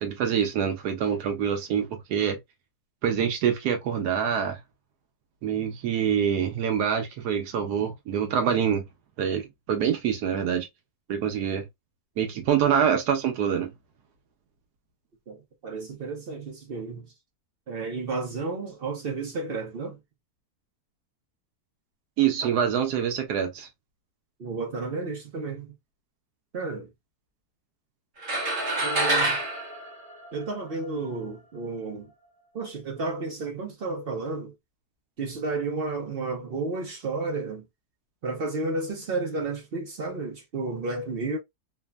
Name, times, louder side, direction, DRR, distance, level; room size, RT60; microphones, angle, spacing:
voice 1, 0.0-2.4 3.0-4.6 5.4-8.8 9.2-10.7 11.1-11.7 12.2-13.7 22.2-23.7, right 8 dB, 80° right, 1.2 m, -25 dB
voice 2, 15.3-17.1 17.7-20.0 24.4-25.7 26.5-26.9 28.8-29.4 30.3-32.1 32.5-34.5 35.2-37.6 38.2-41.4, right 3 dB, 55° right, 0.6 m, -32 dB
sound 1, 28.2-30.8, right 1 dB, 35° right, 0.9 m, -27 dB
3.3 x 2.0 x 2.2 m
omnidirectional pair, 1.7 m